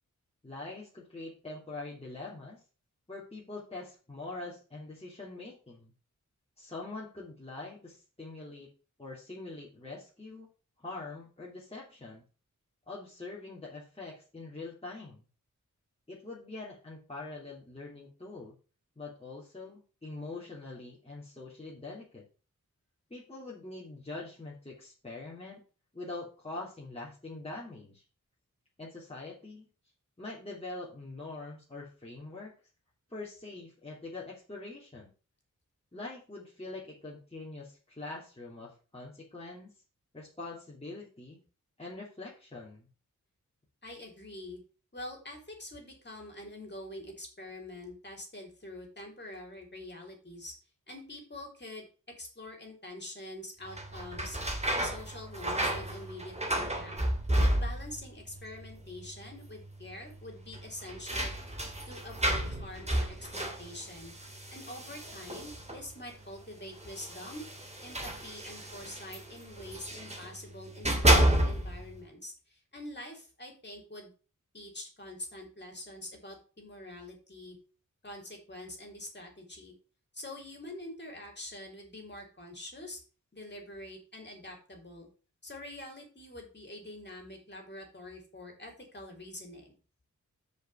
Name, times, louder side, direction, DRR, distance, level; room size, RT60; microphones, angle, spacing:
voice 1, 0.4-2.6 3.1-5.9 6.6-8.7 9.0-10.5 10.8-12.2 12.9-15.2 16.1-18.5 19.0-22.2 23.1-25.6 25.9-28.0 28.8-29.7 30.2-32.5 33.1-35.1 35.9-39.7 40.1-41.4 41.8-42.9, left 2 dB, 20° left, -6 dB, 2.8 m, -44 dB
voice 2, 43.8-44.6 44.9-50.5 50.9-51.9 52.2-54.4 54.7-56.9 57.4-61.3 61.6-64.1 64.5-67.4 67.8-74.1 74.5-77.6 78.0-79.7 80.1-83.0 83.3-85.1 85.4-89.7, left 1 dB, 35° left, 2 dB, 3.7 m, -45 dB
sound 1, 53.7-58.1 58.3-59.0 59.3-59.4 60.5-65.9 66.8-70.3 70.7-71.9, right 1 dB, 20° right, 2.3 m, -31 dB
6.4 x 5.4 x 7.0 m, 0.36 s
wide cardioid pair, 85°, 32 cm